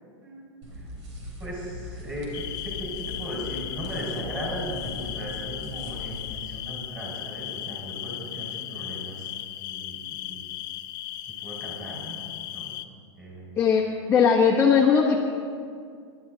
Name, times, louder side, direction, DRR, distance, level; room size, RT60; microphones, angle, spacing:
sound 1, 0.6-6.4, left 2 dB, 75° right, 4.3 m, -40 dB
voice 1, 1.4-9.3 9.6-10.5 11.4-12.7 13.2-13.6, equal, 10° right, -4 dB, 5.1 m, -37 dB
sound 2, 2.3-12.9, left 13 dB, 45° left, 0.8 m, -36 dB
voice 2, 13.6-15.2, left 6 dB, 10° left, -3 dB, 1.0 m, -19 dB
28.5 x 12.0 x 3.9 m, 2.3 s
supercardioid pair, 175°, 15 cm